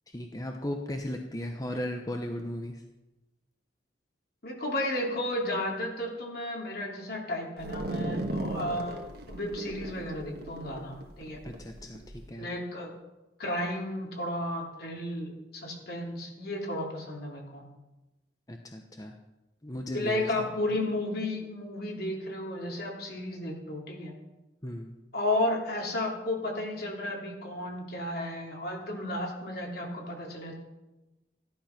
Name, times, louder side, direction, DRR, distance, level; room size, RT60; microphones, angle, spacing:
voice 1, 0.1-2.8 11.4-12.5 18.5-19.1 19.6-20.8 24.6-24.9, left 1 dB, 20° left, 3 dB, 0.9 m, -37 dB
voice 2, 4.4-9.0 9.3-11.4 12.4-12.9 13.4-17.6 19.9-24.1 25.1-30.6, left 1 dB, 60° left, 0 dB, 3.4 m, -33 dB
sound 1, 7.6-12.2, right 1 dB, 60° right, 1.8 m, -36 dB
15.0 x 12.0 x 6.0 m, 1.0 s
head